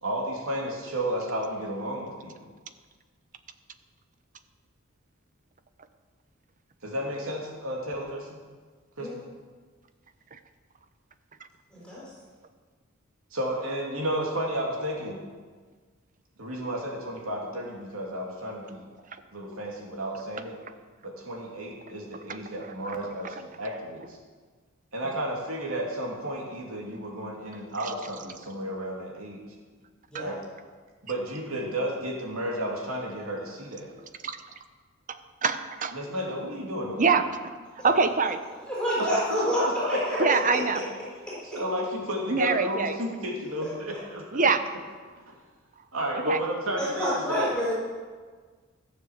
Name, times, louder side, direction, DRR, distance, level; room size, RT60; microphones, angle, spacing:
voice 1, 0.0-2.3 6.8-8.4 9.0-9.2 13.3-15.2 16.4-18.8 19.3-20.5 21.0-24.2 24.9-29.4 30.1-30.4 31.0-33.9 35.9-37.0 39.0-40.3 41.1-44.3 45.3-45.4 45.9-47.5, equal, 85° right, -1 dB, 2.9 m, -32 dB
voice 2, 11.7-12.0 30.1-30.3 37.8-37.9 38.7-39.6 39.9-40.0 46.8-47.7, equal, 5° left, -8 dB, 4.7 m, -28 dB
voice 3, 22.3-23.0 27.8-27.9 30.1-30.2 34.2-34.4 35.1-35.9 37.0-37.5 37.8-38.4 40.2-40.8 42.3-43.0 44.3-44.6 46.3-46.4, right 4 dB, 40° right, 10 dB, 0.8 m, -25 dB
14.5 x 7.3 x 7.3 m, 1.5 s
head